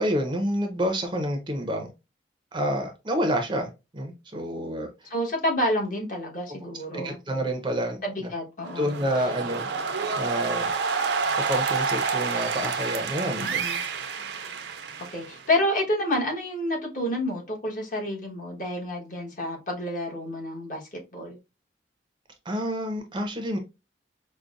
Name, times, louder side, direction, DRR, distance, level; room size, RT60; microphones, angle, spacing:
voice 1, 0.0-1.9 2.5-5.1 6.5-6.6 6.9-8.3 8.8-9.7 10.2-10.7 11.3-13.6 22.5-23.6, equal, 25° right, 0.5 m, -28 dB
voice 2, 5.1-7.2 8.0-8.9 13.4-13.8 15.1-21.4, left 1 dB, 45° left, 1.2 m, -29 dB
sound 1, 8.6-15.5, right 5 dB, 75° right, 0.6 m, -29 dB
5.1 x 2.1 x 2.4 m
head